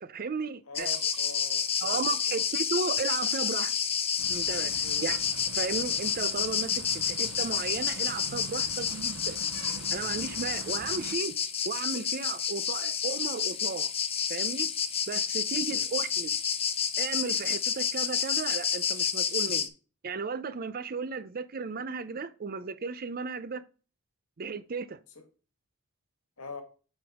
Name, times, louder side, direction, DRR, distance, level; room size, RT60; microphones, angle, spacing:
voice 1, 0.0-0.9 1.8-3.7 4.3-5.2 5.5-9.4 9.9-11.3 11.6-13.9 14.3-14.7 15.1-16.4 17.0-19.7 20.0-23.6 24.4-25.0, right 4 dB, 45° right, 0.5 m, -35 dB
voice 2, 0.7-2.4 4.8-5.2 15.7-15.9 25.1-25.2 26.4-26.6, left 3 dB, 75° left, 1.6 m, -43 dB
sound 1, 0.8-19.7, left 7 dB, 25° left, 0.6 m, -30 dB
sound 2, 4.2-11.1, right 5 dB, 85° right, 0.7 m, -44 dB
8.1 x 5.1 x 3.6 m
head